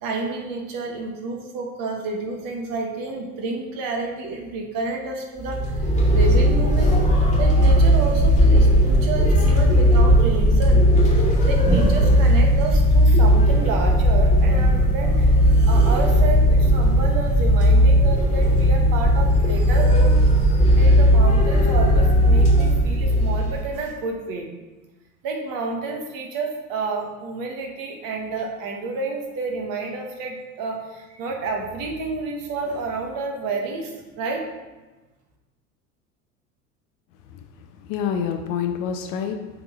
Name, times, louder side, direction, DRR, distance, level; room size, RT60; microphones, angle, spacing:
voice 1, 0.0-5.7 6.1-7.0 7.4-10.9 11.5-24.5 25.2-34.5, right 3 dB, 45° right, 1 dB, 1.4 m, -30 dB
sound 1, 5.4-23.6, equal, 15° left, 1.9 m, -17 dB
voice 2, 37.3-39.5, left 7 dB, 45° left, 6 dB, 0.7 m, -28 dB
7.1 x 3.7 x 4.6 m, 1.2 s
figure-of-eight pair, 75°, 47 cm